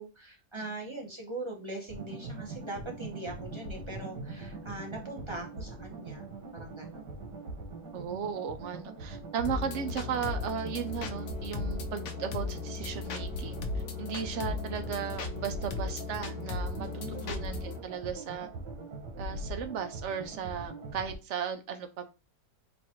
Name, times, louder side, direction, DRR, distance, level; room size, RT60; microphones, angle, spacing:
voice 1, 0.0-6.3 6.5-7.1 16.8-17.5, right 2 dB, 25° right, 1 dB, 0.7 m, -41 dB
sound 1, 1.9-21.1, right 2 dB, 85° right, 1.7 m, -42 dB
voice 2, 7.9-18.5 19.2-22.0, right 7 dB, 65° right, 7 dB, 0.7 m, -36 dB
sound 2, 9.4-17.8, left 5 dB, 65° left, 0.8 m, -37 dB
4.2 x 2.5 x 4.3 m, 0.29 s
omnidirectional pair, 1.7 m